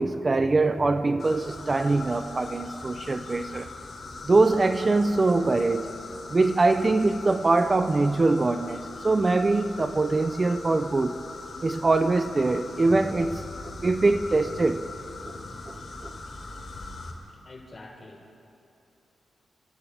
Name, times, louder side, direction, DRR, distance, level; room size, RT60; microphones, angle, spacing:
voice 1, 0.0-3.7 4.2-6.0 6.3-11.2 11.6-14.8 15.2-15.3 15.7-15.8 16.0-16.1, right 3 dB, 30° right, 0.7 m, -23 dB
sound 1, 1.2-17.1, left 3 dB, 65° left, 5.5 m, -41 dB
voice 2, 17.1-18.3, left 2 dB, 40° left, 4.6 m, -47 dB
29.5 x 29.0 x 3.6 m
wide cardioid pair, 110°, 0 cm